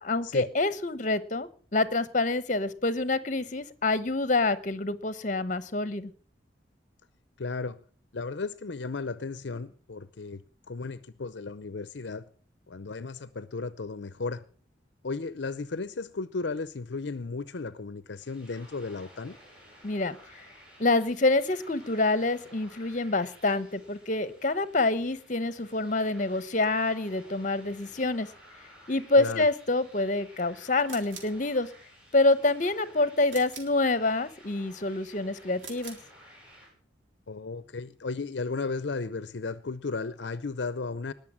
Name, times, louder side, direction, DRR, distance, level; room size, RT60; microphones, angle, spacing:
voice 1, 0.0-6.1 19.8-20.2 20.8-28.3 28.9-31.7 32.1-36.0, left 2 dB, 40° left, 15 dB, 1.0 m, -27 dB
voice 2, 7.4-7.8 8.1-12.2 12.7-14.4 15.0-19.4 29.2-29.5 37.3-41.1, left 4 dB, 70° left, 16 dB, 0.7 m, -35 dB
sound 1, 18.1-36.7, equal, 5° right, 7.0 m, -55 dB
sound 2, 30.8-31.4 33.3-33.8 35.5-36.1, right 5 dB, 80° right, 3.7 m, -44 dB
20.0 x 7.0 x 7.3 m, 0.43 s
head